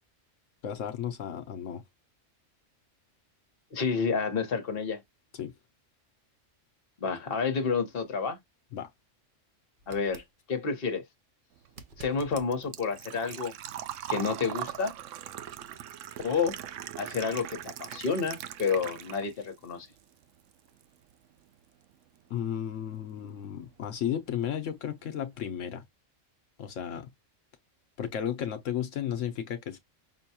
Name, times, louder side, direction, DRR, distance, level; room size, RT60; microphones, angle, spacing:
voice 1, 0.6-1.8 5.3-5.5 8.7-8.9 22.3-25.8 26.6-27.1 28.0-29.8, left 9 dB, 80° left, 1.1 m, -34 dB
voice 2, 3.7-5.0 7.0-8.4 9.9-11.0 12.0-13.5 14.1-14.9 16.2-16.5 17.0-19.9, left 5 dB, 50° left, 1.3 m, -30 dB
sound 1, 9.8-10.3 11.7-12.5 15.5-15.6, right 3 dB, 45° right, 0.9 m, -48 dB
Engine / Trickle dribble / Fill (with liquid), 11.6-19.5 19.8-20.8 21.1-21.2 23.1-23.2 23.4-23.7 24.1-24.2 24.4-24.5, right 11 dB, 80° right, 0.9 m, -40 dB
6.1 x 2.2 x 2.8 m
omnidirectional pair, 1.3 m